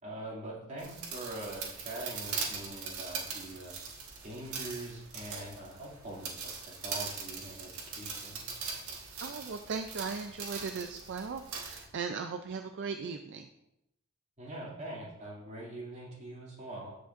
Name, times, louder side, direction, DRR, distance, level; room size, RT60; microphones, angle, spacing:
voice 1, 0.0-3.8 4.2-8.5 14.4-16.9, right 1 dB, 30° right, -6 dB, 2.4 m, -43 dB
sound 1, 0.8-11.9, right 5 dB, 85° right, 1.5 m, -41 dB
voice 2, 9.2-13.5, right 5 dB, 55° right, 6 dB, 0.4 m, -38 dB
15.0 x 5.1 x 2.5 m, 0.87 s
head